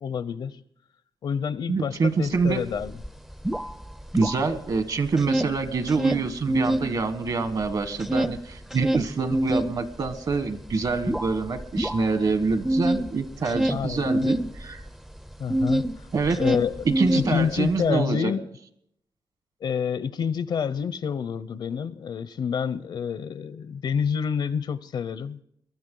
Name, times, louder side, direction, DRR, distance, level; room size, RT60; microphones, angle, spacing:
voice 1, 0.0-0.6 1.2-3.0 13.7-14.3 15.4-15.9 16.4-18.4 19.6-25.4, left 7 dB, 65° left, 0.7 m, -28 dB
voice 2, 1.7-2.6 4.1-14.8 16.1-16.4 16.8-18.3, right 4 dB, 50° right, 1.4 m, -26 dB
sound 1, 2.4-2.5 2.8-4.8 5.0-6.9 7.3-15.9 16.2-17.7, right 1 dB, 5° right, 0.5 m, -26 dB
22.5 x 13.0 x 3.9 m
wide cardioid pair, 155°, 8 cm